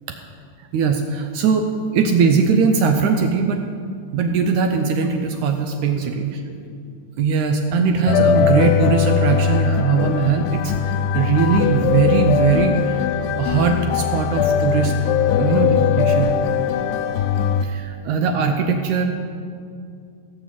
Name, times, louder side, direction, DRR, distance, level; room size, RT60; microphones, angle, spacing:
voice 1, 0.7-1.7 1.9-3.6 4.1-6.3 7.2-13.0 13.3-14.9 15.4-16.4 17.6-19.0, right 5 dB, 75° right, 5 dB, 1.9 m, -20 dB
voice 2, 5.9-6.8 7.8-8.5 15.3-15.7 16.5-17.2, left 4 dB, 60° left, 1 dB, 1.7 m, -39 dB
sound 1, 8.1-17.6, left 7 dB, 80° left, 2.0 m, -20 dB
16.0 x 6.8 x 7.6 m, 2.4 s
omnidirectional pair, 3.9 m